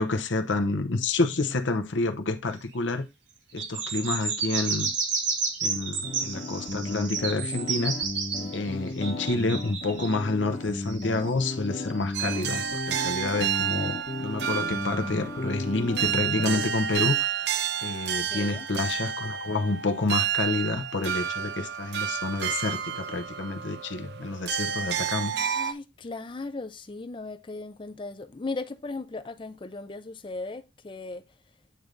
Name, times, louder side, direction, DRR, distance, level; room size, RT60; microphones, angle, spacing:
voice 1, 0.0-3.1 3.5-4.9 5.6-8.0 8.5-17.3 17.8-25.3, left 3 dB, 85° left, 0.9 m, -29 dB
sound 1, 3.6-10.2 10.8-12.3, right 4 dB, 80° right, 1.4 m, -31 dB
sound 2, 6.0-16.6, left 2 dB, 40° left, 1.1 m, -35 dB
voice 2, 8.4-8.9 18.2-18.7 25.3-31.2, left 3 dB, 25° left, 0.4 m, -37 dB
sound 3, 12.1-25.7, right 9 dB, 60° right, 0.5 m, -30 dB
8.8 x 3.3 x 3.8 m
head